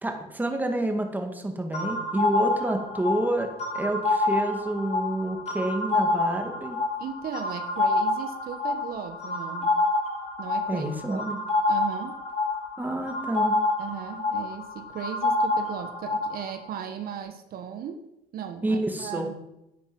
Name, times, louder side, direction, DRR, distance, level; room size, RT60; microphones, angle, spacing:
voice 1, 0.0-3.5 3.7-6.8 10.7-11.4 12.8-13.6 18.6-19.3, right 1 dB, 10° right, 4 dB, 1.9 m, -28 dB
sound 1, 1.7-16.5, left 2 dB, 40° left, 2.7 m, -27 dB
voice 2, 7.0-9.8 10.4-11.3 11.7-12.2 13.8-18.0 18.3-19.3, right 8 dB, 60° right, 7 dB, 1.1 m, -37 dB
10.5 x 8.2 x 6.1 m, 0.89 s
cardioid pair, 110°, 17 cm